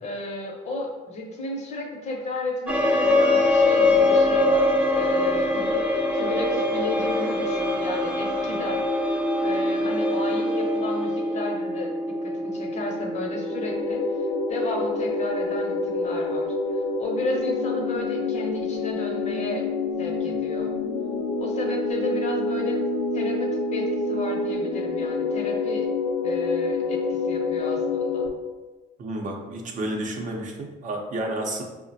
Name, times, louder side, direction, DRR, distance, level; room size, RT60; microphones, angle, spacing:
voice 1, 0.0-5.9 6.1-19.7 20.0-20.7 21.4-22.8 23.1-25.9 26.2-28.3, left 2 dB, 45° left, 1 dB, 0.7 m, -33 dB
sound 1, 2.7-17.4, left 2 dB, 5° right, 0.4 m, -24 dB
sound 2, 13.3-28.3, left 3 dB, 80° left, 0.5 m, -27 dB
voice 2, 29.0-31.6, right 1 dB, 50° right, 1 dB, 0.6 m, -31 dB
4.8 x 2.1 x 2.6 m, 1.2 s
cardioid pair, 110°, 17 cm